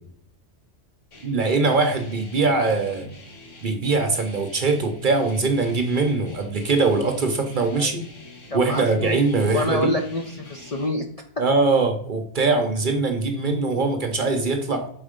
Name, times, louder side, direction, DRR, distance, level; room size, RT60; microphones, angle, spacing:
sound 1, 1.1-10.9, equal, 85° left, 1.7 m, -44 dB
voice 1, 1.2-3.1 3.6-8.0 8.5-9.9 11.4-14.9, right 3 dB, 45° right, 6 dB, 0.9 m, -22 dB
voice 2, 8.5-9.2 9.5-11.1, left 1 dB, 40° left, 3 dB, 0.5 m, -27 dB
5.6 x 4.1 x 5.1 m, 0.68 s
omnidirectional pair, 1.3 m